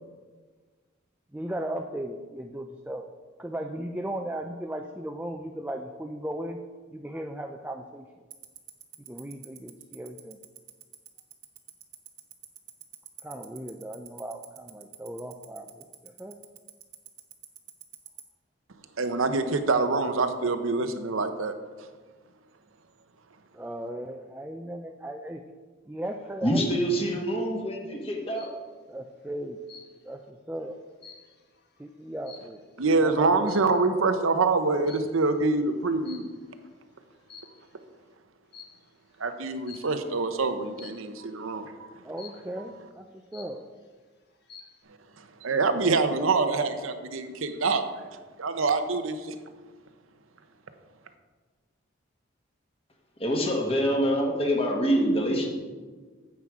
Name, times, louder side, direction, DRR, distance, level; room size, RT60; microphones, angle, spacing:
voice 1, 1.3-3.0 3.4-6.6 6.9-8.0 9.1-10.4 13.2-16.4 23.5-25.4 25.9-26.7 28.9-29.6 30.0-30.8 31.8-32.6 33.0-33.8 42.0-43.0 43.3-43.6, right 1 dB, 10° right, 4 dB, 0.4 m, -36 dB
Tick-tock, 8.3-18.2, right 14 dB, 50° right, 0.9 m, -43 dB
voice 2, 19.0-21.5 32.8-36.3 39.2-41.9 45.2-47.9 48.4-49.4, right 3 dB, 80° right, 8 dB, 0.8 m, -25 dB
voice 3, 26.4-28.5 53.2-55.5, equal, 25° left, 1 dB, 1.4 m, -25 dB
sound 1, 28.0-28.6 29.7-30.2 30.6-32.9 33.4-33.9 34.9-35.3 36.1-36.7 37.1-37.8 38.5-38.9 39.7-40.1 40.8-41.2 42.2-42.7 43.1-43.2 43.3-43.9 44.3-44.8, left 6 dB, 50° left, 1.2 m, -49 dB
9.4 x 7.6 x 4.8 m, 1.4 s
head